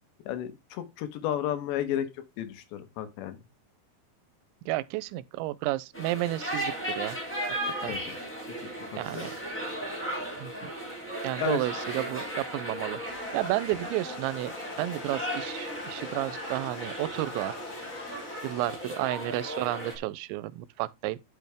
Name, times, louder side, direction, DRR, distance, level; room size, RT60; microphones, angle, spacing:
voice 1, 0.3-2.1 2.4-3.4 7.8-8.2 9.1-9.3 11.4-11.7, left 10 dB, 80° left, 3.3 m, -32 dB
voice 2, 4.7-7.2 7.8-8.0 8.9-9.3 10.4-10.7 11.2-13.0 13.3-17.6 18.4-21.2, right 17 dB, 90° right, 2.9 m, -32 dB
sound 1, 5.9-20.0, right 1 dB, 5° left, 2.3 m, -36 dB
sound 2, 13.0-18.9, left 6 dB, 55° left, 2.2 m, -45 dB
10.5 x 6.1 x 3.4 m
omnidirectional pair, 5.1 m